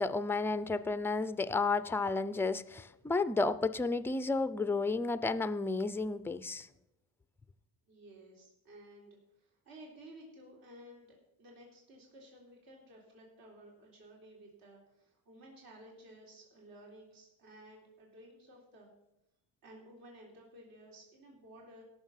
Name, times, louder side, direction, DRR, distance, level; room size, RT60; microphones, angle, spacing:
voice 1, 0.0-6.7, left 3 dB, 5° left, 14 dB, 0.4 m, -32 dB
voice 2, 7.9-18.9 19.6-21.8, right 1 dB, 60° right, -1 dB, 3.7 m, -55 dB
17.0 x 6.8 x 5.6 m, 0.89 s
cardioid pair, 120°, 39 cm